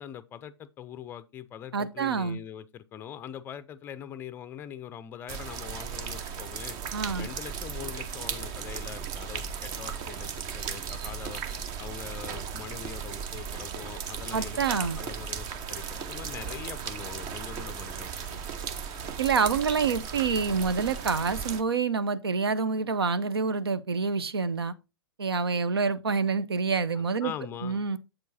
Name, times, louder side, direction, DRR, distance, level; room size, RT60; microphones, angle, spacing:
voice 1, 0.0-6.8 7.1-11.4 11.8-18.6 27.2-27.8, left 9 dB, 15° left, 0.5 m, -42 dB
voice 2, 1.7-2.4 6.9-7.3 14.3-15.0 19.2-24.7 25.2-27.3 27.6-28.0, right 5 dB, 70° right, 0.6 m, -27 dB
sound 1, 5.3-21.6, right 7 dB, 25° right, 0.6 m, -36 dB
7.7 x 4.5 x 4.1 m
figure-of-eight pair, 115°, 14 cm